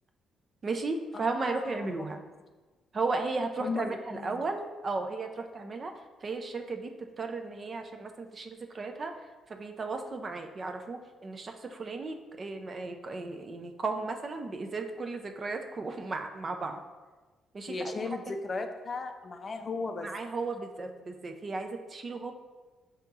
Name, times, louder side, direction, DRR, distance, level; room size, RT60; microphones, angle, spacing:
voice 1, 0.6-2.2 2.9-5.9 6.2-6.9 7.2-9.1 9.5-16.8 17.5-18.0 18.3-18.4 20.0-22.3, right 3 dB, 40° right, 5 dB, 0.4 m, -35 dB
voice 2, 1.1-2.1 3.6-4.4 17.7-20.1, left 3 dB, 35° left, 6 dB, 0.4 m, -36 dB
5.2 x 2.8 x 3.5 m, 1.3 s
cardioid pair, 90°, 0 cm